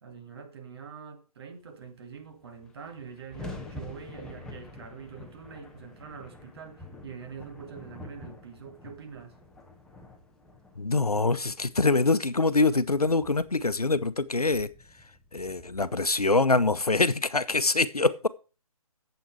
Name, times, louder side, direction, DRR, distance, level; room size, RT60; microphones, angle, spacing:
voice 1, 0.0-9.4, right 6 dB, 45° right, 2.0 m, -44 dB
sound 1, 2.2-2.3 2.4-16.8, left 2 dB, 5° left, 0.8 m, -47 dB
voice 2, 10.8-14.7 15.3-18.3, left 3 dB, 90° left, 0.7 m, -24 dB
9.2 x 8.0 x 4.5 m
figure-of-eight pair, 140°, 19 cm